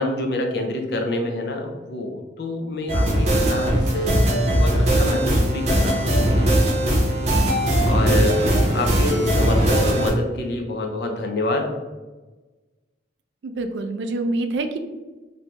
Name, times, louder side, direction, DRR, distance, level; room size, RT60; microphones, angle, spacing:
voice 1, 0.0-6.3 7.8-11.8, left 2 dB, 60° left, 3 dB, 0.5 m, -27 dB
sound 1, 2.9-10.1, right 1 dB, 35° right, 0.7 m, -19 dB
voice 2, 13.4-14.8, right 2 dB, 75° right, 7 dB, 0.3 m, -26 dB
3.3 x 2.6 x 2.9 m, 1.2 s
head